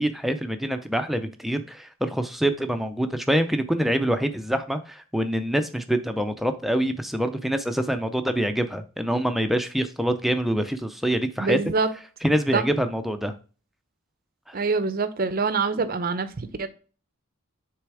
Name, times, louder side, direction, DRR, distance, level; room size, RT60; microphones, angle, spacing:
voice 1, 0.0-11.6 12.2-13.3 14.5-14.6, equal, ahead, 0.5 m, -25 dB
voice 2, 11.4-11.9 12.5-12.7 14.5-16.7, right 4 dB, 45° right, 0.6 m, -25 dB
6.5 x 3.4 x 4.7 m
head